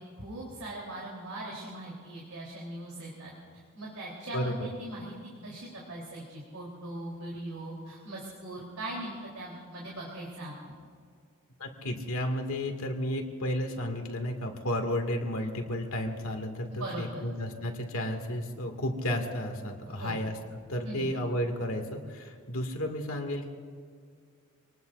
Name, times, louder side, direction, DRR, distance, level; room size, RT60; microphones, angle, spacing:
voice 1, 0.0-3.3 3.7-5.1 5.4-10.8 16.7-17.2 19.9-20.2 20.8-21.1, right 1 dB, 75° right, -4 dB, 3.6 m, -40 dB
voice 2, 4.3-4.7 11.6-20.3 20.7-23.5, left 1 dB, 65° left, 3 dB, 2.2 m, -32 dB
26.5 x 20.0 x 2.6 m, 2.1 s
head